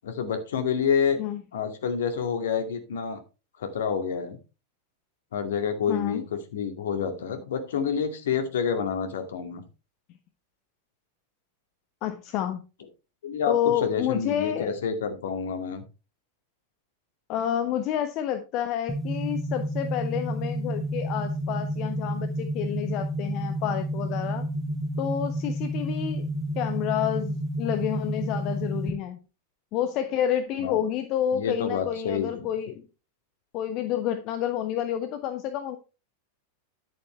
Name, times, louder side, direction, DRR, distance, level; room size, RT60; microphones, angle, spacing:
voice 1, 0.0-1.2 1.5-3.2 3.6-4.4 5.3-6.2 6.5-9.6 13.2-15.8 30.6-30.8 31.3-32.5, left 6 dB, 60° left, 7 dB, 2.3 m, -28 dB
voice 2, 5.9-6.2 12.0-12.6 13.5-14.8 17.3-24.5 25.0-26.2 26.5-29.2 29.7-32.8 33.5-35.8, left 10 dB, 40° left, 8 dB, 1.1 m, -29 dB
sound 1, 18.9-28.9, right 1 dB, 5° left, 5.7 m, -30 dB
11.0 x 8.9 x 3.3 m, 0.30 s
figure-of-eight pair, 90°, 0 cm